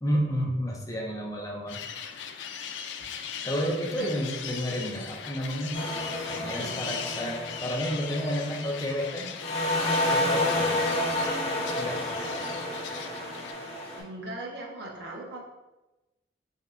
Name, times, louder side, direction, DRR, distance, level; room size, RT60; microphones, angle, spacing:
voice 1, 0.0-1.8 3.4-5.8 6.3-9.3 10.1-10.7 11.8-12.2, equal, 20° left, -1 dB, 0.5 m, -31 dB
sound 1, 1.7-13.5, left 7 dB, 85° left, 0.3 m, -39 dB
sound 2, 5.7-9.1 9.4-14.0, left 1 dB, 35° left, 1.2 m, -30 dB
voice 2, 13.8-15.4, right 1 dB, 70° right, -1 dB, 0.8 m, -39 dB
5.3 x 2.2 x 2.5 m, 1.0 s
head